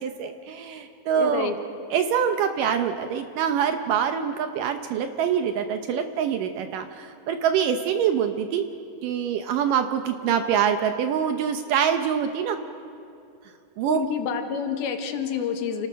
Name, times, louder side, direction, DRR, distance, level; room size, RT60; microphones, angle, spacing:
voice 1, 0.0-1.5 1.9-8.6 9.0-12.6 13.8-14.0, right 8 dB, 75° right, 7 dB, 2.1 m, -25 dB
voice 2, 1.2-1.5 13.9-15.9, left 7 dB, 80° left, 5 dB, 3.2 m, -28 dB
28.5 x 18.0 x 6.4 m, 2.6 s
omnidirectional pair, 4.4 m